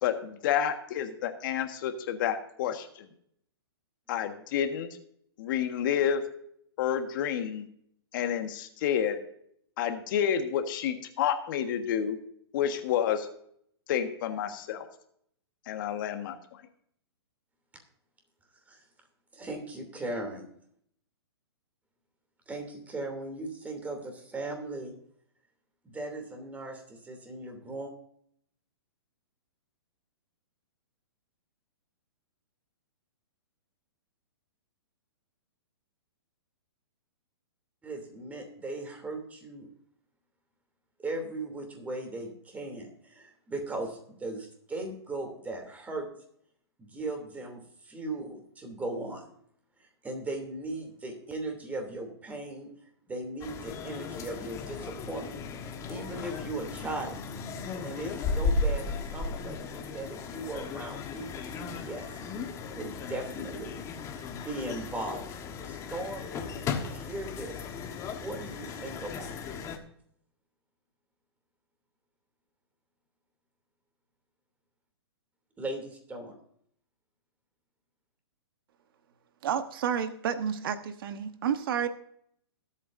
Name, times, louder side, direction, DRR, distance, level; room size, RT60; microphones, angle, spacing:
voice 1, 0.0-3.0 4.1-4.9 5.4-6.2 6.8-7.7 8.1-9.2 9.8-12.2 12.5-13.3 13.9-14.9 15.7-16.3, left 9 dB, 50° left, 7 dB, 1.6 m, -29 dB
voice 2, 19.3-20.4 22.5-24.9 25.8-27.9 37.8-39.7 41.0-46.1 46.8-49.3 49.8-52.7 53.1-55.4 55.9-57.1 57.8-62.1 62.7-63.7 64.3-65.2 65.6-67.6 68.1-69.3 75.6-76.3, right 2 dB, 10° right, 4 dB, 3.0 m, -38 dB
sound 1, 53.4-69.8, left 4 dB, 20° left, 1.4 m, -36 dB
voice 3, 79.4-81.9, right 8 dB, 60° right, 9 dB, 1.2 m, -30 dB
21.0 x 8.4 x 2.7 m, 0.67 s
hypercardioid pair, 135°, 14 cm